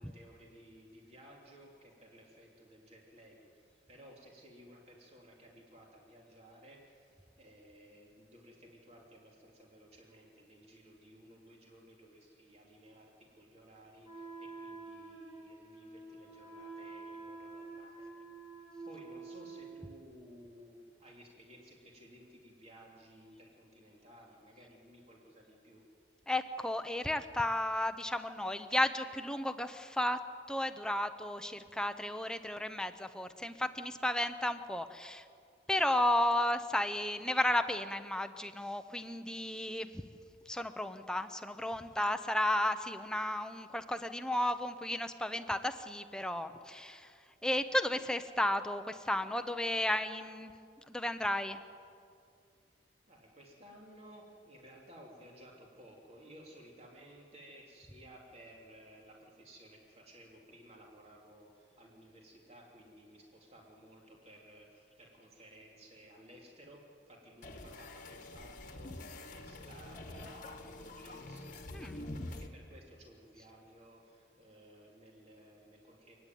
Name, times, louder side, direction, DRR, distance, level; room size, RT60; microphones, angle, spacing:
voice 1, 0.0-18.1 18.8-25.8 53.1-76.2, equal, 35° right, -1 dB, 3.1 m, -57 dB
Wind instrument woodwind instrument, 14.0-20.0, right 3 dB, 15° right, 5.0 m, -48 dB
voice 2, 26.3-30.2 30.5-35.3 35.7-40.0 40.5-47.1 47.4-50.5 50.9-51.6 71.7-72.0, left 1 dB, 5° left, 9 dB, 0.7 m, -33 dB
sound 1, 67.4-72.5, left 2 dB, 45° left, 1.4 m, -46 dB
30.0 x 10.0 x 9.2 m, 2.4 s
head